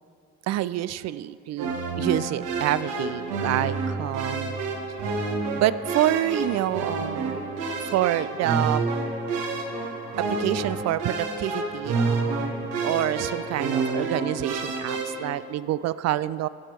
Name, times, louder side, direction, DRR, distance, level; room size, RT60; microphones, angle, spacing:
voice 1, 0.4-4.5 5.5-7.6 7.9-8.8 10.2-16.5, right 13 dB, 50° right, 17 dB, 0.4 m, -27 dB
sound 1, 1.6-15.3, right 3 dB, 75° right, 1.3 m, -29 dB
15.0 x 6.0 x 4.5 m, 2.5 s
hypercardioid pair, 45°, 34 cm